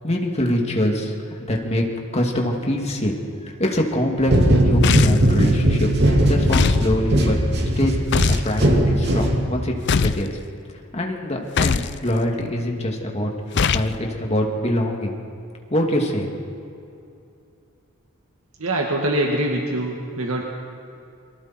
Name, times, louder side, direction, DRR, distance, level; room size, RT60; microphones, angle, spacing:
voice 1, 0.0-1.1 1.5-1.8 2.1-3.1 3.4-4.3 4.6-7.4 7.8-10.3 10.9-13.3 13.7-15.1 15.7-16.4, left 1 dB, 30° left, 0 dB, 2.7 m, -24 dB
sound 1, 4.3-9.8, equal, 50° right, 2.5 m, -19 dB
sound 2, 4.8-5.3 6.5-6.9 8.1-8.5 9.9-10.3 11.6-11.9 13.5-13.9, left 5 dB, 55° left, 0.5 m, -20 dB
voice 2, 18.6-20.4, right 1 dB, 85° right, 0 dB, 2.1 m, -23 dB
28.5 x 24.0 x 4.6 m, 2.6 s
head